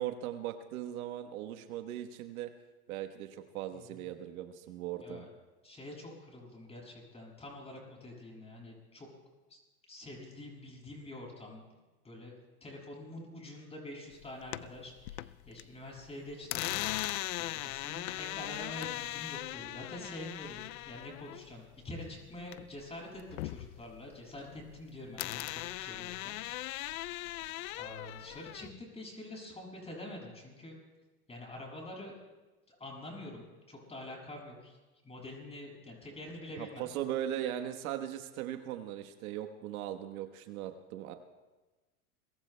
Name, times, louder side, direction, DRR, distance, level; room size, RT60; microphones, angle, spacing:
voice 1, 0.0-2.5 2.9-5.3 36.6-41.1, right 11 dB, 70° right, 7 dB, 1.3 m, -39 dB
voice 2, 3.7-4.1 5.0-5.3 5.6-9.1 9.5-9.6 9.9-11.6 12.0-12.3 12.6-16.7 17.4-26.4 26.8-26.9 27.8-30.8 31.3-32.1 32.7-34.8 35.0-36.9, left 1 dB, 15° left, -1 dB, 6.6 m, -46 dB
sound 1, 14.2-15.6 15.9-22.9 23.2-24.8 25.2-28.7, left 17 dB, 70° left, 0.6 m, -39 dB
28.5 x 22.5 x 2.2 m, 1.2 s
supercardioid pair, 125°, 43 cm